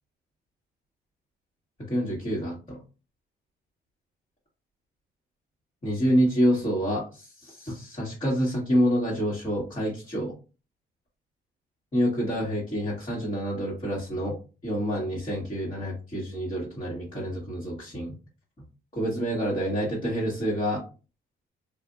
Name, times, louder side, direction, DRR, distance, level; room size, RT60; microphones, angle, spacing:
voice 1, 1.9-2.8 5.8-10.3 11.9-14.4 14.6-18.1 18.9-20.8, equal, 30° left, -7 dB, 1.4 m, -27 dB
3.4 x 2.5 x 2.5 m, 0.33 s
cardioid pair, 90°, 20 cm